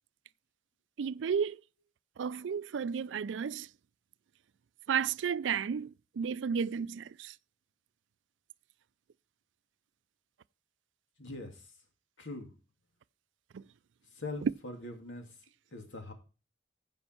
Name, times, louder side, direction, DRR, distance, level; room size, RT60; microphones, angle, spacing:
voice 1, 1.0-1.6 2.2-3.7 4.9-7.3 13.5-13.6 14.4-14.5, right 6 dB, 80° right, 0.4 m, -32 dB
voice 2, 11.2-11.5 12.2-12.5 14.2-15.3 15.7-16.1, left 2 dB, 85° left, 2.4 m, -42 dB
15.0 x 5.4 x 4.4 m
head